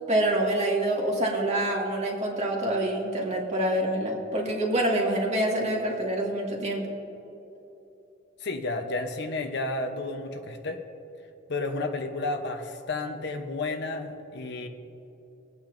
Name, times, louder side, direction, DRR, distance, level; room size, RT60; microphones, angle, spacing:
voice 1, 0.1-6.8, right 1 dB, 35° right, -2 dB, 1.8 m, -26 dB
voice 2, 8.4-10.8 11.5-14.7, left 2 dB, 60° left, 4 dB, 0.8 m, -31 dB
24.0 x 8.8 x 2.6 m, 3.0 s
head